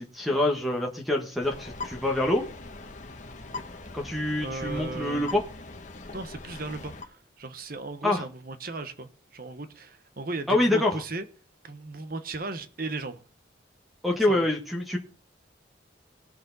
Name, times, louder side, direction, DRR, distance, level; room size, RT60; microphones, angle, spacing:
voice 1, 0.0-2.4 3.9-5.4 8.0-8.2 10.5-11.0 14.0-15.0, left 1 dB, ahead, 1.3 m, -26 dB
sound 1, 1.4-7.0, left 3 dB, 40° left, 1.2 m, -41 dB
voice 2, 4.4-5.3 6.1-11.3 11.6-13.2 14.3-14.5, right 3 dB, 50° right, 1.1 m, -36 dB
19.0 x 6.7 x 4.0 m
head